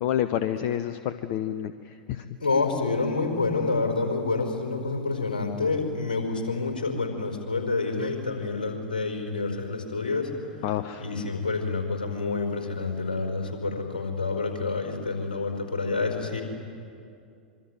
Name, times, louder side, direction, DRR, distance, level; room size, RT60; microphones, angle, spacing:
voice 1, 0.0-2.2 10.6-11.0, left 11 dB, 50° left, 11 dB, 1.0 m, -29 dB
voice 2, 2.4-10.3 11.0-16.4, left 3 dB, 75° left, 4 dB, 4.8 m, -28 dB
26.0 x 24.5 x 9.2 m, 2.4 s
figure-of-eight pair, 90°, 5 cm